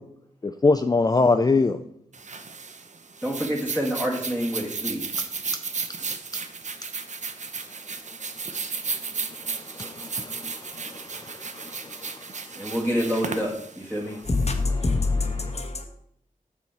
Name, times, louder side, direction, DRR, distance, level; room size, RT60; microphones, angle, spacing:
voice 1, 0.4-1.8 9.3-12.7 15.4-15.7, left 3 dB, 25° left, 0.4 m, -25 dB
sound 1, 2.1-14.6, right 4 dB, 55° right, 0.7 m, -34 dB
voice 2, 3.2-5.1 12.6-14.2, equal, 10° right, 1.5 m, -27 dB
voice 3, 14.2-15.9, left 3 dB, 45° left, 1.1 m, -25 dB
7.1 x 6.3 x 4.4 m
wide cardioid pair, 75°, 15 cm